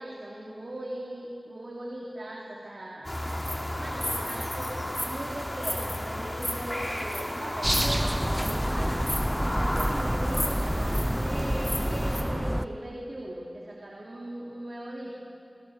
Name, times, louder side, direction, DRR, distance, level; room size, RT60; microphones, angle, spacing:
voice 1, 0.0-3.1 3.7-9.0 9.5-15.3, right 1 dB, 55° right, -3 dB, 3.4 m, -39 dB
sound 1, 3.0-12.2, left 1 dB, 25° left, 4.1 m, -32 dB
sound 2, 7.6-12.7, equal, 5° right, 0.7 m, -28 dB
29.5 x 22.5 x 6.7 m, 2.5 s
wide cardioid pair, 45°, 0 cm